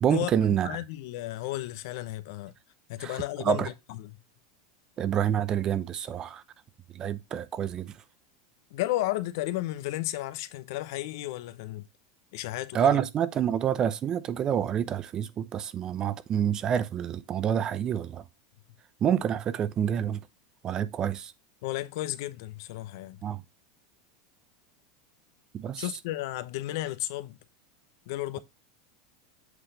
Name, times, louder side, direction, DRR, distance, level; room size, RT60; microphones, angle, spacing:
voice 1, 0.0-0.8 3.0-3.7 5.0-6.4 6.9-8.0 12.7-18.2 19.0-20.2 20.6-21.3 23.2-23.4 25.5-25.9, right 9 dB, 30° right, 0.6 m, -28 dB
voice 2, 0.6-2.5 2.9-4.1 8.7-11.8 12.3-13.0 21.6-23.2 25.8-27.4 28.1-28.4, left 16 dB, 70° left, 0.8 m, -33 dB
8.1 x 3.3 x 5.6 m
supercardioid pair, 120°, 2 cm